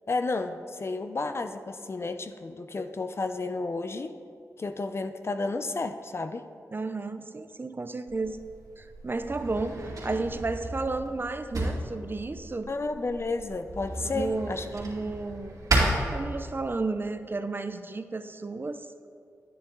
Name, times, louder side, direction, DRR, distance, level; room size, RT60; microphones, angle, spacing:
voice 1, 0.1-4.1 4.6-6.4 12.7-14.7 15.0-15.1, left 3 dB, 45° left, 8 dB, 0.6 m, -32 dB
voice 2, 6.7-8.4 8.8-12.7 14.0-15.6 16.1-18.9, right 3 dB, 35° right, 10 dB, 0.6 m, -32 dB
Drawer open or close, 8.1-16.8, right 2 dB, 75° right, 2.7 m, -33 dB
10.0 x 9.8 x 3.9 m, 2.4 s
cardioid pair, 60°, 6 cm